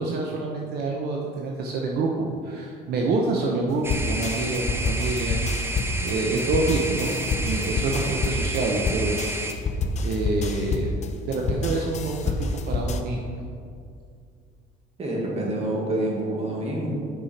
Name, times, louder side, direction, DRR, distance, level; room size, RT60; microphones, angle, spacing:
voice 1, 0.0-7.2 7.4-9.2 10.0-10.9 11.3-13.2, right 3 dB, 70° right, 0 dB, 0.8 m, -27 dB
sound 1, 3.8-9.5, right 2 dB, 15° right, 0.6 m, -31 dB
sound 2, 3.9-13.0, left 3 dB, 45° left, 0.6 m, -28 dB
voice 2, 15.0-16.9, right 1 dB, 40° right, -2 dB, 2.0 m, -27 dB
8.3 x 5.5 x 4.2 m, 2.3 s
cardioid pair, 110°, 17 cm